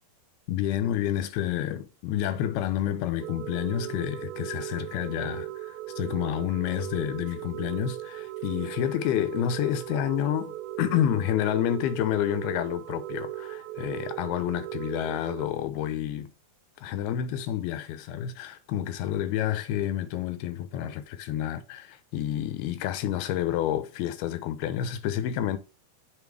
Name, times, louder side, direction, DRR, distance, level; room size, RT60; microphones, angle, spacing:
voice 1, 0.5-16.3 16.8-25.6, left 11 dB, 85° left, 2.8 m, -29 dB
sound 1, 3.2-15.5, right 14 dB, 85° right, 2.5 m, -37 dB
7.3 x 3.4 x 6.0 m
omnidirectional pair, 4.4 m